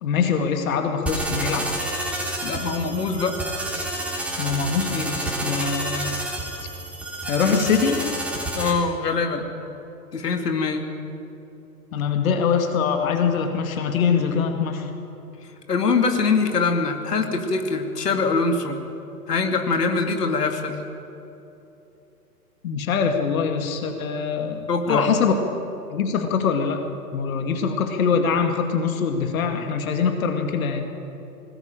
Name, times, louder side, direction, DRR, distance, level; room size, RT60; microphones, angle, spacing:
voice 1, 0.0-1.7 4.4-6.1 7.3-8.1 11.9-14.9 22.6-25.3 25.9-26.8 27.1-30.9, left 6 dB, 55° left, 5 dB, 2.4 m, -23 dB
sound 1, 1.1-8.7, right 1 dB, 5° right, 3.6 m, -29 dB
voice 2, 2.4-3.4 5.6-5.7 8.5-9.5 10.1-10.9 15.7-18.8 19.3-20.8 24.7-25.1, left 4 dB, 70° left, 5 dB, 2.5 m, -23 dB
21.0 x 20.0 x 9.1 m, 3.0 s
figure-of-eight pair, 120°, 49 cm